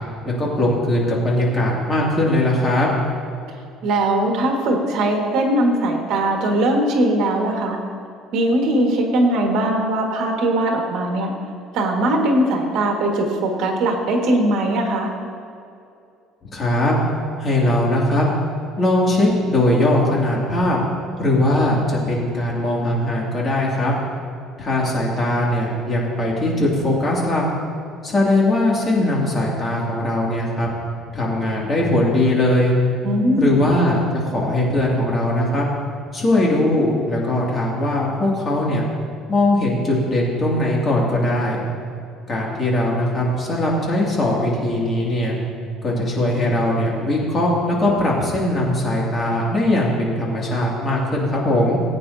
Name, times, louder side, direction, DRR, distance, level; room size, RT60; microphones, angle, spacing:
voice 1, 0.2-2.9 16.5-17.0 17.4-18.3 18.8-20.8 21.2-23.9 24.6-27.4 28.0-30.7 31.1-32.7 33.4-35.7 36.1-38.9 39.3-41.6 42.3-45.4 45.8-51.8, left 1 dB, 25° left, -4 dB, 2.6 m, -20 dB
voice 2, 3.8-7.8 8.3-11.3 11.7-15.1 33.0-33.5, right 1 dB, 65° right, 1 dB, 1.8 m, -20 dB
19.5 x 9.1 x 2.8 m, 2.5 s
cardioid pair, 145°, 0 cm